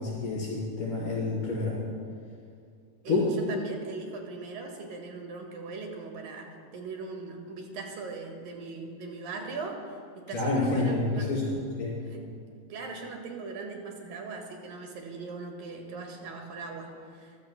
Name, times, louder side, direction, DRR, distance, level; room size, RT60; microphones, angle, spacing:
voice 1, 0.0-1.8 3.1-3.4 10.3-12.0, left 2 dB, 60° left, -10 dB, 5.3 m, -28 dB
voice 2, 3.0-11.3 12.0-12.3 12.7-17.4, right 4 dB, 70° right, 2 dB, 3.4 m, -40 dB
24.5 x 14.5 x 2.2 m, 2.3 s
omnidirectional pair, 4.2 m